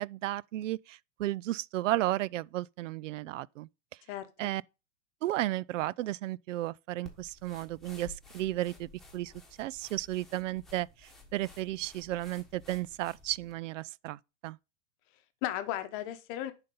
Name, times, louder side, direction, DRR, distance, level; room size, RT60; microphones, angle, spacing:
voice 1, 0.0-3.7 4.4-4.6 5.2-9.3 9.6-14.6, right 15 dB, 80° right, 0.5 m, -34 dB
voice 2, 4.1-4.5 15.1-16.5, left 13 dB, 25° left, 0.8 m, -36 dB
sound 1, 7.0-13.5, left 3 dB, ahead, 1.1 m, -54 dB
11.0 x 4.0 x 5.3 m
supercardioid pair, 165°, 37 cm